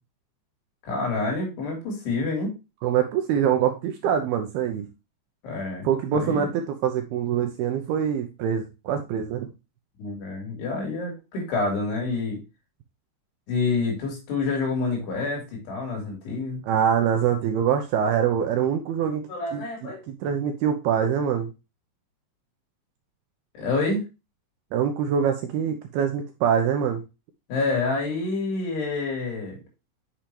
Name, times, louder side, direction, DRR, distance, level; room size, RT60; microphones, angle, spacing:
voice 1, 0.8-2.5 5.4-6.5 10.0-12.4 13.5-16.6 19.3-20.0 23.6-24.0 27.5-29.6, left 3 dB, 65° left, -1 dB, 5.2 m, -28 dB
voice 2, 2.8-4.9 5.8-9.5 16.6-19.3 19.5-21.5 24.7-27.0, right 8 dB, 75° right, 5 dB, 2.4 m, -24 dB
8.6 x 6.4 x 2.9 m, 0.26 s
omnidirectional pair, 5.2 m